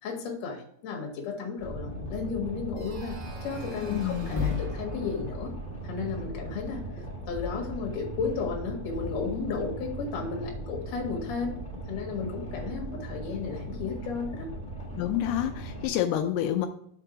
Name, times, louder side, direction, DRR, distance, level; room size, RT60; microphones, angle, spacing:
voice 1, 0.0-5.5 5.8-11.6 11.9-14.5, left 5 dB, 55° left, 1 dB, 2.1 m, -34 dB
Boat Water vehicle, 1.6-15.9, right 1 dB, 5° left, 0.7 m, -39 dB
sound 1, 2.8-7.4, right 3 dB, 85° right, 1.3 m, -48 dB
voice 2, 3.8-4.6 15.0-16.7, left 11 dB, 85° left, 6 dB, 2.5 m, -28 dB
sound 2, 4.3-5.5 7.4-8.3 8.7-9.3, left 6 dB, 20° left, 1.1 m, -37 dB
6.5 x 4.5 x 4.9 m, 0.67 s
omnidirectional pair, 4.6 m